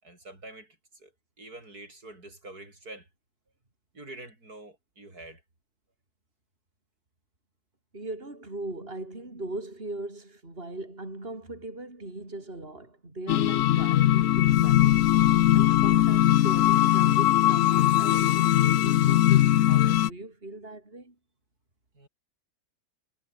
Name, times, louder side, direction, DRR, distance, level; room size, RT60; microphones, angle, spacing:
voice 1, 0.0-1.1 1.4-3.1 3.9-5.4 21.9-22.1, right 2 dB, 75° right, 7.4 m, -46 dB
voice 2, 7.9-15.0 15.5-21.2, right 2 dB, 35° right, 5.0 m, -39 dB
sound 1, 13.3-20.1, left 13 dB, 65° left, 0.9 m, -20 dB
omnidirectional pair, 1.6 m